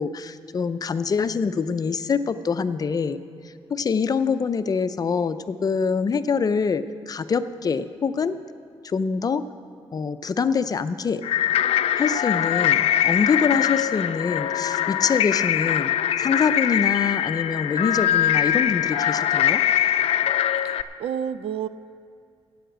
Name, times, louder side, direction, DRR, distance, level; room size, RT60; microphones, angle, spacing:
voice 1, 0.0-3.2 3.7-8.4 8.8-9.4 9.9-11.2 12.0-15.9 16.2-19.6, left 5 dB, 40° left, 11 dB, 0.5 m, -25 dB
sound 1, 11.2-20.8, left 11 dB, 90° left, 0.4 m, -22 dB
voice 2, 20.6-21.7, right 8 dB, 75° right, 14 dB, 0.4 m, -30 dB
13.0 x 8.6 x 7.9 m, 2.3 s
cardioid pair, 120°, 10 cm